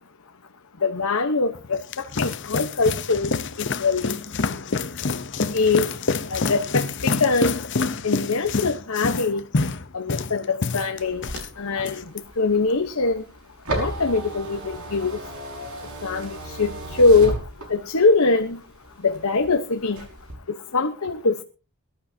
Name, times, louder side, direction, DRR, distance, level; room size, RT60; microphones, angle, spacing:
voice 1, 0.8-3.3 3.6-4.2 5.5-5.9 6.3-7.6 8.0-9.4 9.9-11.3 11.6-12.0 12.4-13.2 13.7-15.2 16.0-17.4 17.7-18.6 19.0-20.0 20.5-21.4, left 3 dB, 75° left, 5 dB, 1.1 m, -22 dB
sound 1, 1.6-11.5 11.8-12.2, left 4 dB, 55° left, 0.8 m, -27 dB
sound 2, 11.0-18.1 18.5-19.5 19.9-20.3, right 1 dB, 75° right, 5.7 m, -34 dB
23.0 x 12.0 x 2.8 m, 0.33 s
head